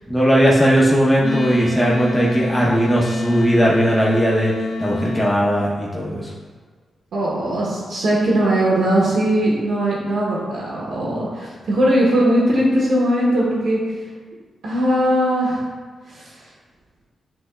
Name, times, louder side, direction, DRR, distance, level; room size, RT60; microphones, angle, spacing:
voice 1, 0.1-4.5 4.8-6.3, equal, 10° left, -5 dB, 0.8 m, -18 dB
Wind instrument woodwind instrument, 1.2-5.4, left 3 dB, 45° left, 0.9 m, -26 dB
voice 2, 7.1-13.8 14.6-15.6 16.1-16.5, right 1 dB, 85° right, -6 dB, 0.9 m, -19 dB
7.6 x 2.8 x 2.2 m, 1.5 s
cardioid pair, 65°, 0 cm